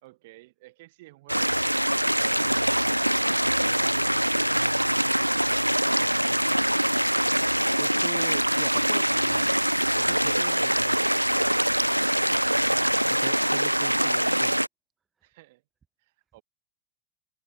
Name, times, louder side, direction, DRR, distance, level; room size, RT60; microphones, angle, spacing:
voice 1, 0.0-1.8 15.2-15.6 16.0-16.4, right 20 dB, 50° right, 3.9 m, -52 dB
sound 1, 1.3-14.7, right 1 dB, 90° right, 0.4 m, -24 dB
voice 2, 7.8-9.5 10.0-11.4 13.1-14.6, right 6 dB, 20° right, 1.3 m, -44 dB
figure-of-eight pair, 90°, 0 cm